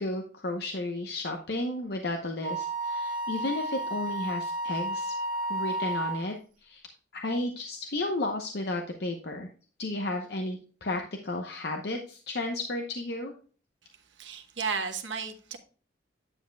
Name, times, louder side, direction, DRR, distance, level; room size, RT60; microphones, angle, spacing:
voice 1, 0.0-5.1 5.5-6.3 6.6-6.8 7.1-9.5 9.8-13.3, left 2 dB, 60° left, 0.8 m, -33 dB
Wind instrument woodwind instrument, 2.4-6.3, right 1 dB, 40° right, 1.9 m, -32 dB
voice 2, 14.2-15.6, right 5 dB, 75° right, 1.2 m, -33 dB
9.8 x 7.2 x 2.2 m
head